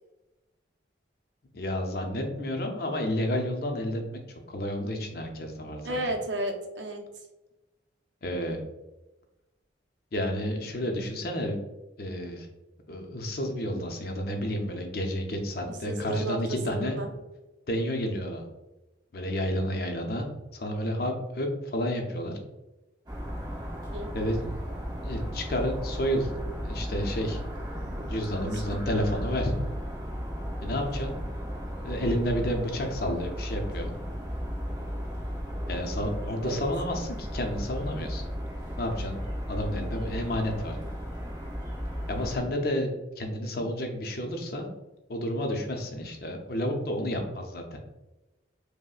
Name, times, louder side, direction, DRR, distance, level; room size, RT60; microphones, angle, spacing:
voice 1, 1.5-4.0 4.5-6.0 8.2-8.6 10.1-11.6 12.0-12.5 12.9-17.0 17.7-18.4 19.1-20.3 20.5-22.4 24.1-26.3 26.6-27.4 28.1-29.5 30.6-31.1 31.8-33.9 35.7-38.2 38.8-39.2 39.5-40.8 42.1-42.9 43.2-44.7 45.1-47.8, equal, 50° left, 3 dB, 0.5 m, -30 dB
voice 2, 5.8-7.0 15.7-16.4 16.7-17.1 23.9-24.1 27.8-28.2 28.5-28.8 36.4-36.6, right 1 dB, 70° right, 2 dB, 0.6 m, -33 dB
sound 1, 23.1-42.4, equal, 20° right, 0.6 m, -35 dB
5.3 x 2.1 x 2.4 m, 1.0 s
head